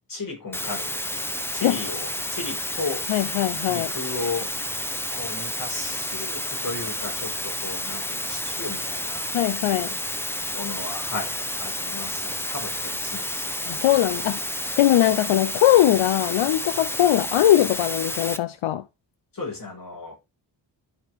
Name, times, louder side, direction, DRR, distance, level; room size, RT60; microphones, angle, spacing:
voice 1, 0.1-3.1 3.7-4.5 5.1-9.3 10.5-13.7 14.0-14.1 19.3-20.2, left 3 dB, 45° left, 5.3 m, -35 dB
sound 1, 0.5-18.4, left 1 dB, 5° left, 0.6 m, -30 dB
voice 2, 3.1-3.9 9.3-10.0 13.7-14.5 14.8-18.8, left 13 dB, 85° left, 0.7 m, -20 dB
12.0 x 5.4 x 3.5 m
wide cardioid pair, 175°, 46 cm